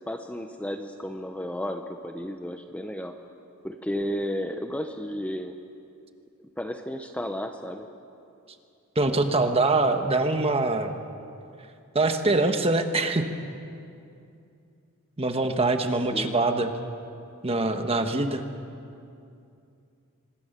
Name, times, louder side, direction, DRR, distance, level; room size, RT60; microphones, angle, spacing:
voice 1, 0.1-3.1 3.6-5.5 6.6-7.9 16.1-16.4, equal, 5° left, 5 dB, 0.8 m, -33 dB
voice 2, 8.9-10.9 11.9-13.3 15.2-16.7 17.4-18.4, right 2 dB, 25° right, 6 dB, 1.4 m, -24 dB
25.5 x 20.0 x 6.7 m, 2.6 s
head